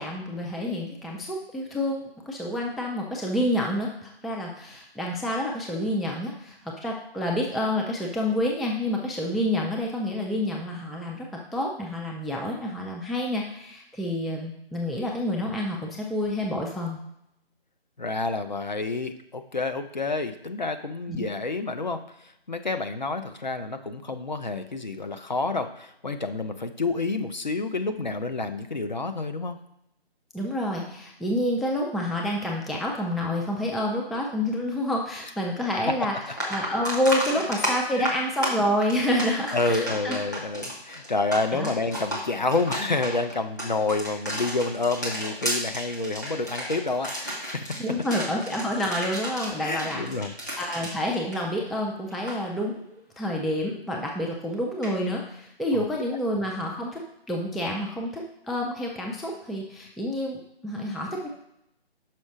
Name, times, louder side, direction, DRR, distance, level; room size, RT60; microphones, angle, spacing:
voice 1, 0.0-11.3 11.5-17.0 21.1-21.2 30.3-40.2 41.5-41.7 47.8-50.0 50.6-57.0 57.3-61.3, left 1 dB, ahead, -1 dB, 0.4 m, -28 dB
voice 2, 18.0-29.6 35.7-36.0 38.0-38.1 39.3-47.8 49.6-50.3 55.7-55.9, left 3 dB, 45° left, 8 dB, 0.6 m, -29 dB
sound 1, 35.7-35.8 36.2-51.8 52.1-52.4 54.8-54.9, equal, 15° left, 0.9 m, -33 dB
6.0 x 5.5 x 4.9 m, 0.79 s
figure-of-eight pair, 175°, 31 cm